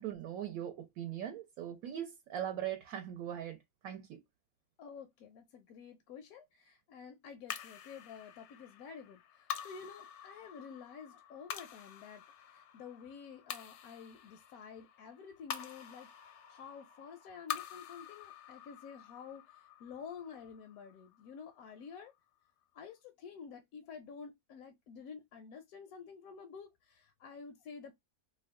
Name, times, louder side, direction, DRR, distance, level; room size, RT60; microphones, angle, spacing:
voice 1, 0.0-3.6 3.8-4.2, right 10 dB, 75° right, 1.1 m, -40 dB
voice 2, 4.8-22.1 22.7-27.9, left 6 dB, 80° left, 1.0 m, -50 dB
sound 1, 7.5-22.0, left 9 dB, 65° left, 0.7 m, -47 dB
2.8 x 2.2 x 3.5 m
omnidirectional pair, 1.5 m